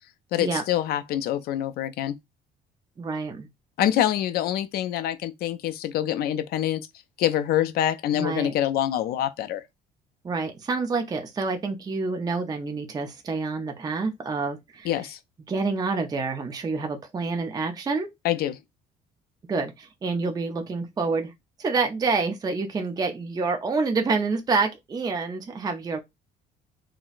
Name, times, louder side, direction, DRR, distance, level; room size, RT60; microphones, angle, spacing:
voice 1, 0.3-2.2 3.8-6.9 7.2-9.6 14.8-15.2 18.2-18.6, left 11 dB, 65° left, 0.4 m, -25 dB
voice 2, 3.0-3.5 8.1-8.5 10.2-14.9 15.5-18.1 19.5-21.3 21.6-26.0, right 4 dB, 20° right, 0.5 m, -27 dB
3.8 x 2.0 x 2.4 m
cardioid pair, 110°, 17 cm